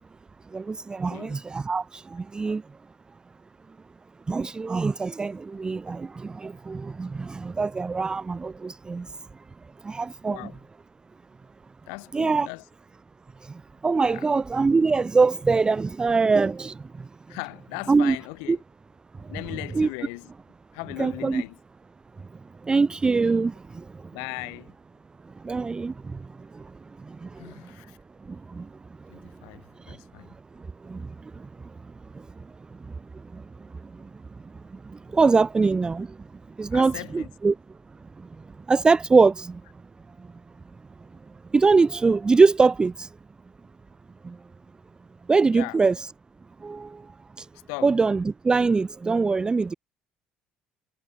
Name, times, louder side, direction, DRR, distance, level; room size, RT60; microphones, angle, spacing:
voice 1, 0.5-2.6 4.3-9.1 9.8-10.5 12.1-12.5 13.8-16.8 17.9-18.2 18.5-18.6 19.7-19.9 21.0-21.4 22.7-23.8 25.4-25.9 27.2-27.3 28.5-28.7 29.9-30.0 30.9-31.0 33.3-33.4 35.1-36.1 36.6-37.5 38.7-39.6 41.5-43.1 44.2-44.3 45.3-46.1 46.6-46.9 47.4-47.5 47.8-49.7, right 4 dB, 20° right, 0.4 m, -22 dB
voice 2, 10.3-10.6 11.9-12.6 14.0-14.2 17.3-18.6 19.3-20.3 20.7-21.6 24.1-24.7 27.4-28.0 29.1-30.3 36.7-37.3 45.5-45.8 47.7-47.9, left 40 dB or more, 65° left, 0.6 m, -38 dB
figure-of-eight pair, 55°, 4 cm